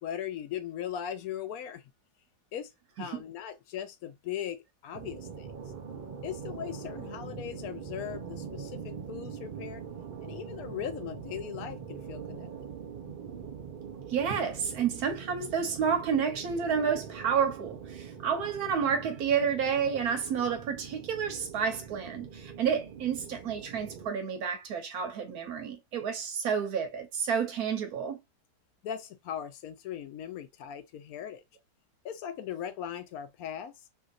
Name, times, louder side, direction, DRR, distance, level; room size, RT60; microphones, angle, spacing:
voice 1, 0.0-1.8 2.5-2.7 3.0-5.5 6.2-9.8 10.2-12.5 28.8-31.4 32.0-33.7, left 9 dB, 70° left, 1.0 m, -39 dB
sound 1, 4.9-24.1, right 6 dB, 90° right, 0.4 m, -43 dB
voice 2, 14.1-28.2, right 7 dB, 70° right, 1.3 m, -30 dB
3.2 x 2.7 x 2.4 m
omnidirectional pair, 1.7 m